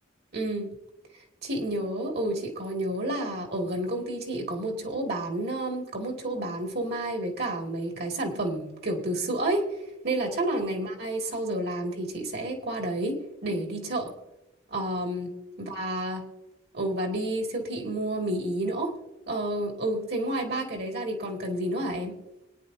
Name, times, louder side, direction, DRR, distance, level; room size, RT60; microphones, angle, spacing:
voice 1, 0.3-0.7 1.4-9.7 10.0-14.1 14.7-15.3 15.6-16.2 16.7-19.0 19.3-22.1, right 1 dB, 55° right, 2 dB, 2.5 m, -30 dB
25.0 x 10.0 x 2.8 m, 0.90 s
head